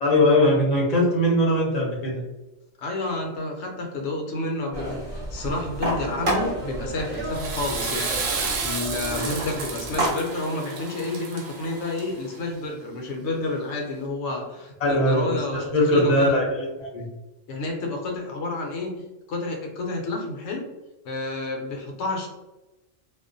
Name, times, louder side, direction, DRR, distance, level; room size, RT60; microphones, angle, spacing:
voice 1, 0.0-2.2 14.8-17.1, left 1 dB, 40° left, -4 dB, 0.6 m, -21 dB
voice 2, 2.8-8.2 8.6-16.3 17.5-18.9 19.3-20.6 21.0-22.3, left 2 dB, 65° left, 1 dB, 0.8 m, -30 dB
sound 1, 4.7-10.1, right 1 dB, 40° right, 0.5 m, -30 dB
Water / Toilet flush, 7.1-12.4, right 4 dB, 70° right, 0.9 m, -31 dB
2.3 x 2.1 x 2.5 m, 1.0 s
omnidirectional pair, 1.4 m